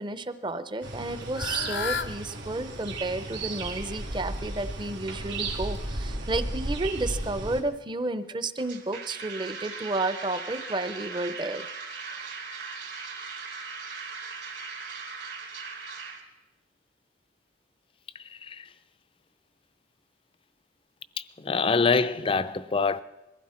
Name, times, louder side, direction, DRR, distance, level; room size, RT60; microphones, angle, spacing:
voice 1, 0.0-11.7, right 2 dB, 25° right, 0.6 m, -32 dB
Fowl / Bird, 0.8-6.1, left 6 dB, 65° left, 0.7 m, -38 dB
sound 1, 0.8-7.6, right 2 dB, 85° right, 2.4 m, -34 dB
sound 2, 8.6-16.2, right 4 dB, 65° right, 3.1 m, -39 dB
voice 2, 18.1-18.7 21.2-23.0, left 4 dB, 30° left, 0.4 m, -26 dB
22.0 x 15.0 x 4.3 m
head